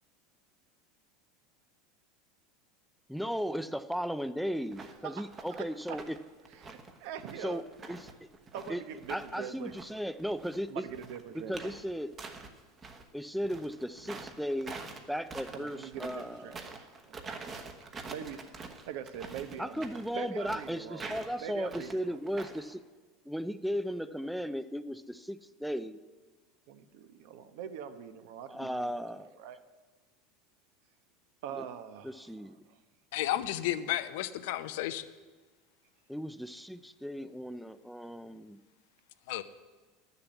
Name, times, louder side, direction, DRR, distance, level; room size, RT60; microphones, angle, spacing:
voice 1, 3.1-6.2 7.4-7.6 7.9-8.3 8.7-8.8 9.1-10.8 11.3-12.1 13.1-14.7 15.1-16.6 19.6-22.8 23.3-26.0 28.5-29.3 31.5-31.6 32.0-32.6 36.1-38.6, equal, ahead, 0.4 m, -36 dB
sound 1, 4.7-5.0 5.3-6.2 6.5-9.3 9.6-13.0 13.4-22.7, right 4 dB, 25° right, 1.1 m, -45 dB
voice 2, 5.0-6.0 6.6-7.7 8.5-9.8 10.7-11.7 15.5-17.2 17.5-17.7 18.1-18.4 18.9-21.1 21.4-22.2 26.7-28.9 29.4-29.6 31.4-32.8, right 9 dB, 70° right, 1.0 m, -43 dB
voice 3, 33.1-35.0 39.3-39.4, left 13 dB, 75° left, 0.7 m, -32 dB
11.5 x 7.0 x 8.2 m
supercardioid pair, 140°, 0 cm